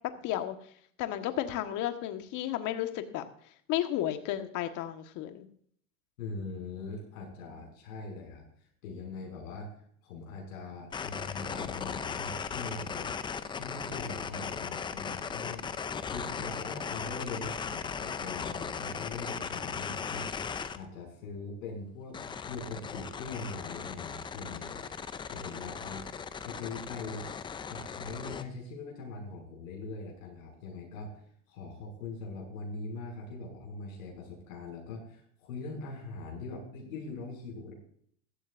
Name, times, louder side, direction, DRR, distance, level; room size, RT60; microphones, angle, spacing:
voice 1, 0.2-0.6 1.0-3.2 3.7-5.5, left 12 dB, 45° left, 7 dB, 1.5 m, -33 dB
voice 2, 6.2-8.4 8.8-9.7 10.0-13.1 13.5-15.7 16.1-20.3 20.7-22.2 22.5-24.8 25.3-26.0 26.4-27.3 27.7-31.1 31.5-37.7, left 3 dB, 70° left, 0 dB, 6.2 m, -42 dB
sound 1, 10.9-20.8 22.1-28.4, left 6 dB, 10° left, 0.4 m, -37 dB
15.5 x 12.5 x 2.6 m, 0.63 s
supercardioid pair, 125°, 42 cm